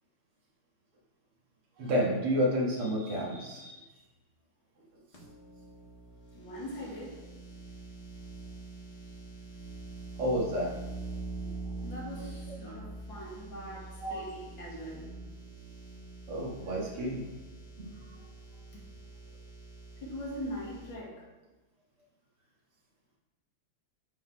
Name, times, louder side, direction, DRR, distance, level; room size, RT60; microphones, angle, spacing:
voice 1, 1.8-3.8 10.2-10.7 11.4-11.5 14.0-14.3 16.3-17.2 17.8-18.2, equal, 80° right, -4 dB, 2.5 m, -31 dB
sound 1, 5.1-20.9, right 3 dB, 30° left, 1.6 m, -45 dB
voice 2, 6.3-7.2 11.8-15.1 18.7-18.8 20.0-21.3, equal, 60° left, -4 dB, 2.7 m, -41 dB
9.1 x 4.0 x 5.0 m, 1.1 s
omnidirectional pair, 2.4 m